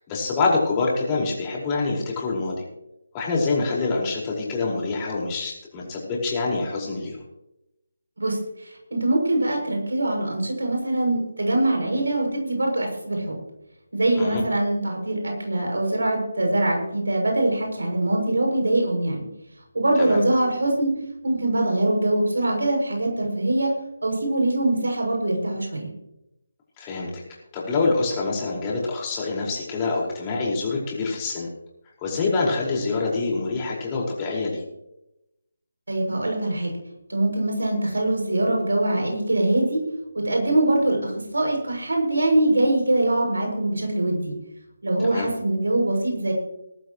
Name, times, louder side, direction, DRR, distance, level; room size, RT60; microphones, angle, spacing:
voice 1, 0.1-2.5 3.1-7.2 14.2-14.4 20.0-20.2 26.8-27.2 27.5-31.5 32.0-34.6 45.0-45.3, left 3 dB, 20° left, -3 dB, 5.1 m, -26 dB
voice 2, 8.2-13.4 13.9-19.2 19.7-20.9 21.2-23.7 24.0-25.9 35.9-36.7 37.1-39.8 40.1-44.3 44.8-46.3, right 1 dB, 80° right, 1 dB, 6.9 m, -23 dB
20.0 x 13.5 x 3.2 m, 0.89 s
figure-of-eight pair, 155°, 0 cm